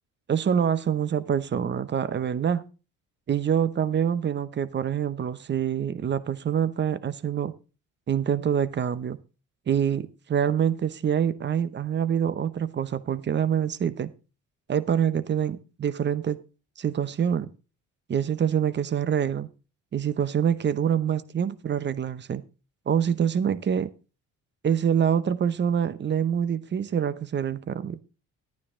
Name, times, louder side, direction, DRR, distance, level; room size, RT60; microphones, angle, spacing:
voice 1, 0.3-2.7 3.3-7.5 8.1-9.2 9.7-14.1 14.7-16.4 16.8-17.5 18.1-19.5 19.9-22.4 22.9-23.9 24.6-28.0, right 8 dB, 35° right, 0.8 m, -25 dB
12.0 x 9.6 x 3.7 m
supercardioid pair, 80°, 32 cm